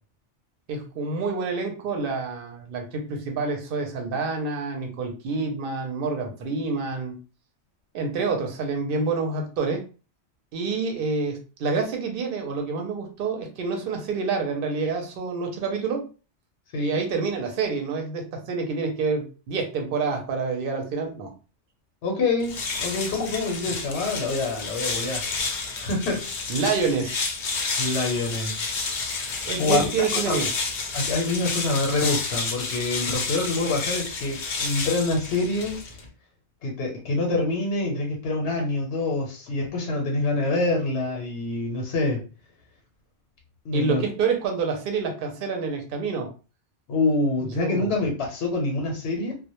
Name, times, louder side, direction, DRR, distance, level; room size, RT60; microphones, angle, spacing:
voice 1, 0.7-7.2 7.9-9.8 10.5-16.0 16.7-21.3 26.5-27.2 29.4-30.5 43.7-46.3 47.5-47.9, right 4 dB, 60° right, 3 dB, 0.7 m, -27 dB
voice 2, 22.0-25.2 25.8-26.2 27.8-28.6 29.6-29.8 30.1-30.4 30.9-35.8 36.6-42.2 43.6-44.1 46.9-49.4, left 2 dB, 80° left, 1 dB, 0.9 m, -26 dB
sound 1, 22.4-36.1, left 4 dB, 55° left, 0.6 m, -30 dB
2.1 x 2.1 x 2.9 m, 0.34 s
omnidirectional pair, 1.1 m